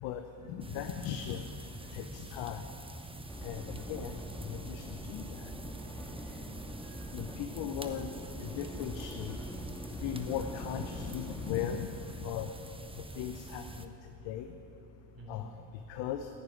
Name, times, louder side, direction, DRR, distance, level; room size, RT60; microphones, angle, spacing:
voice 1, 0.5-1.5 1.9-2.6 3.4-4.2 4.4-5.5 7.1-8.1 8.4-9.4 10.0-11.9 12.2-12.5 13.1-13.9 14.2-14.5 15.3-15.5 15.9-16.3, left 9 dB, 75° left, 7 dB, 0.9 m, -37 dB
sound 1, 0.6-13.9, right 2 dB, 10° right, 1.1 m, -46 dB
sound 2, 3.2-11.5, equal, 5° left, 2.4 m, -44 dB
voice 2, 5.7-7.4 15.1-15.4, right 2 dB, 45° right, -4 dB, 3.9 m, -56 dB
11.0 x 9.2 x 10.0 m, 2.6 s
hypercardioid pair, 55°, 45 cm